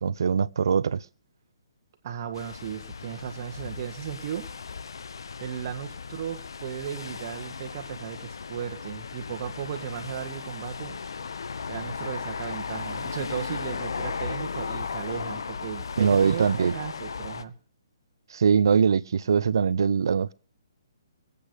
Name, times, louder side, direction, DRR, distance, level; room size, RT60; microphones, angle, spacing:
voice 1, 0.0-1.0 16.0-16.8 18.3-20.3, right 6 dB, 70° right, 0.6 m, -22 dB
voice 2, 2.0-4.5 5.4-11.0 11.7-17.5, right 9 dB, 40° right, 1.9 m, -36 dB
sound 1, 2.3-17.4, left 5 dB, 80° left, 0.7 m, -36 dB
21.0 x 8.6 x 4.9 m
hypercardioid pair, 155°, 2 cm